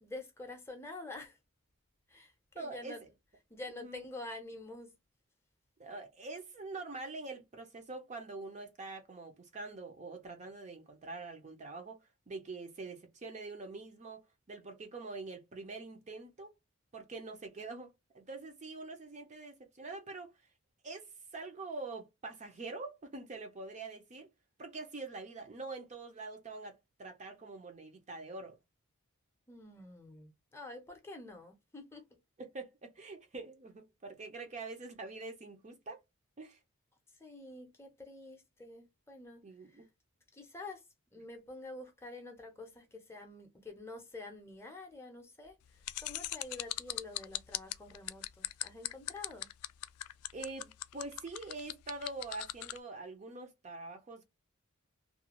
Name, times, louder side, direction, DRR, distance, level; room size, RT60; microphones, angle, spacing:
voice 1, 0.0-1.4 2.1-3.0 3.5-4.9 29.5-32.1 37.2-39.9 40.3-40.8 41.1-49.5, left 2 dB, 10° left, 0.6 m, -48 dB
voice 2, 2.6-3.0 3.7-4.0 5.8-16.5 16.9-20.3 20.8-24.3 24.6-28.6 32.4-36.0 36.4-36.6 39.4-39.8 50.3-54.2, right 3 dB, 35° right, 0.5 m, -45 dB
sound 1, 45.8-52.8, left 16 dB, 80° left, 0.3 m, -38 dB
2.4 x 2.2 x 2.9 m
head